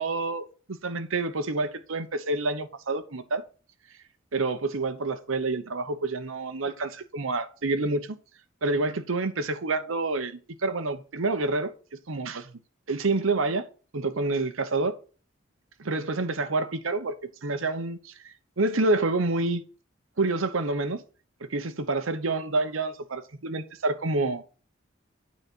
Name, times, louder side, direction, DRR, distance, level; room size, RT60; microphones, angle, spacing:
voice 1, 0.0-3.4 4.3-8.1 8.6-11.7 12.1-12.5 12.9-13.7 13.9-15.0 15.8-17.2 17.4-19.6 20.2-21.0 21.5-24.4, right 3 dB, 85° right, 0.9 m, -28 dB
9.3 x 4.2 x 6.0 m
head